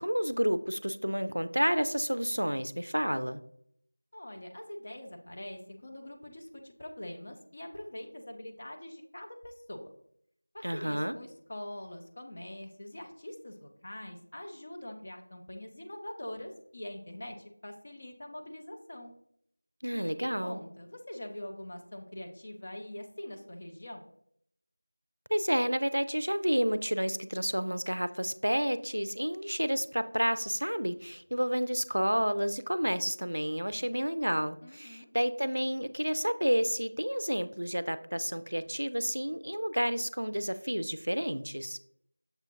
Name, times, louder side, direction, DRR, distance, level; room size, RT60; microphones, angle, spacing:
voice 1, 0.0-3.4 10.6-11.2 19.8-20.6 25.3-41.8, equal, 90° right, 13 dB, 0.3 m, -30 dB
voice 2, 4.1-9.9 10.5-19.1 19.9-24.0 34.6-35.1, left 1 dB, 30° left, 2 dB, 0.5 m, -44 dB
6.6 x 2.4 x 2.9 m, 0.70 s
figure-of-eight pair, 175°, 0 cm